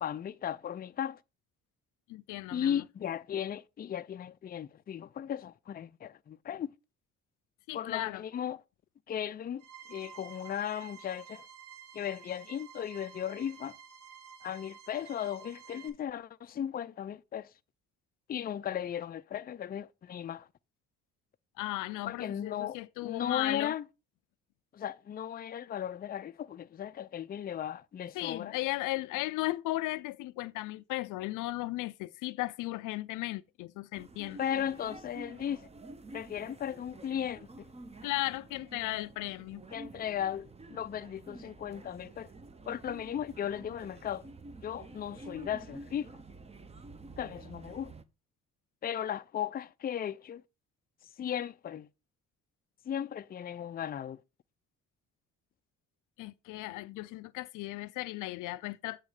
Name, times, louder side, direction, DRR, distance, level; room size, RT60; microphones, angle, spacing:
voice 1, 0.0-1.2 2.5-6.7 7.7-8.6 9.1-9.6 9.9-11.5 11.9-13.8 14.4-17.5 18.3-20.5 22.0-23.8 24.7-28.5 34.4-35.7 36.1-37.7 39.7-42.3 42.7-44.3 44.6-46.1 47.2-47.9 48.8-50.4 51.2-51.9 52.8-54.2, left 9 dB, 30° left, 0.4 m, -36 dB
voice 2, 2.1-2.8 7.7-8.2 21.6-23.7 28.1-34.4 38.0-39.6 56.2-59.0, left 18 dB, 90° left, 0.5 m, -36 dB
sound 1, 9.6-15.9, right 8 dB, 75° right, 1.4 m, -51 dB
sound 2, 33.9-48.0, right 2 dB, 20° right, 0.7 m, -50 dB
8.4 x 3.1 x 6.4 m
cardioid pair, 90°, 30 cm